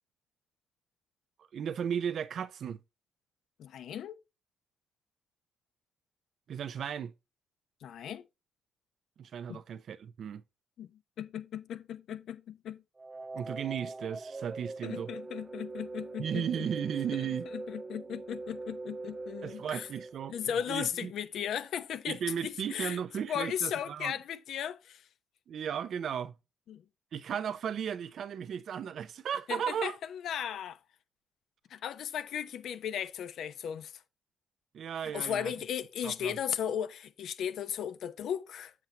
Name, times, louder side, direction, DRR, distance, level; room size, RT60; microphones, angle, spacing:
voice 1, 1.5-2.8 6.5-7.1 9.2-10.4 13.3-15.1 16.2-17.5 19.4-20.3 20.7-21.1 22.1-24.1 25.5-26.4 27.1-29.9 34.7-35.5 36.0-36.4, right 8 dB, 60° right, 0.8 m, -35 dB
voice 2, 3.6-4.2 7.8-8.2 9.5-9.6 10.8-10.9 11.2-12.8 14.8-16.4 17.5-19.9 20.3-23.0 23.3-25.0 26.7-26.8 29.5-30.8 31.7-33.9 35.1-38.7, left 9 dB, 70° left, 0.9 m, -36 dB
sound 1, 13.0-20.9, right 3 dB, 25° right, 0.6 m, -43 dB
7.6 x 7.4 x 2.9 m
cardioid pair, 90°, 0 cm